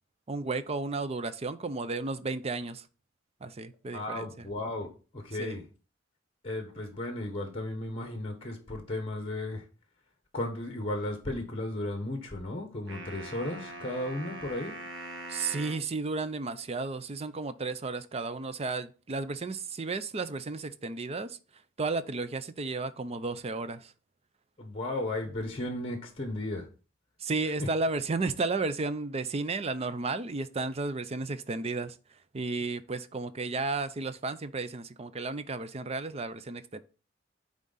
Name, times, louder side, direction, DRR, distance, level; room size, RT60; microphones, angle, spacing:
voice 1, 0.3-2.9 3.4-4.5 5.4-5.6 15.3-21.4 21.8-23.9 27.2-36.8, right 3 dB, 30° right, 0.5 m, -33 dB
voice 2, 3.9-5.6 6.4-9.7 10.3-14.7 24.6-26.7, left 1 dB, 30° left, 1.1 m, -35 dB
sound 1, 12.9-15.9, right 2 dB, 70° right, 1.4 m, -42 dB
9.2 x 3.7 x 4.0 m
head